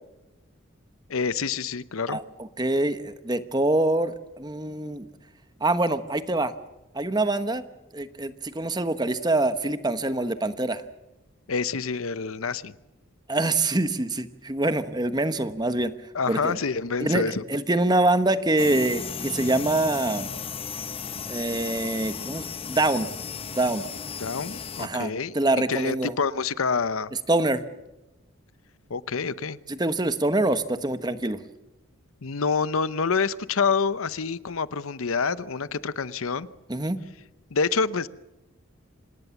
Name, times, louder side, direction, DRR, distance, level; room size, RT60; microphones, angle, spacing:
voice 1, 1.1-2.2 11.5-12.7 16.1-17.4 24.2-25.4 25.7-27.1 28.9-29.6 32.2-36.5 37.5-38.1, left 5 dB, 75° left, 0.7 m, -27 dB
voice 2, 2.1-5.1 5.6-6.5 6.9-7.6 7.9-10.8 13.3-15.9 16.3-16.6 17.0-20.3 21.3-23.1 23.6-23.9 24.8-26.1 27.3-27.6 29.7-31.4 36.7-37.0, right 2 dB, 20° right, 1.0 m, -25 dB
sound 1, 18.6-24.9, left 6 dB, 25° left, 0.8 m, -35 dB
26.5 x 19.0 x 7.1 m
head